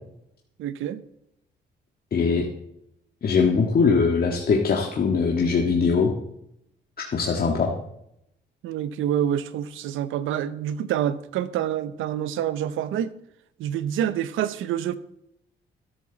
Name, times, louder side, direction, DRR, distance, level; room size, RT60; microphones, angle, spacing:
voice 1, 0.6-1.0 8.6-13.1 13.6-14.9, right 10 dB, 85° right, 0.9 m, -27 dB
voice 2, 2.1-2.5 3.2-6.1 7.1-7.7, left 5 dB, 50° left, 1.9 m, -21 dB
13.0 x 12.5 x 4.1 m
cardioid pair, 90°, 20 cm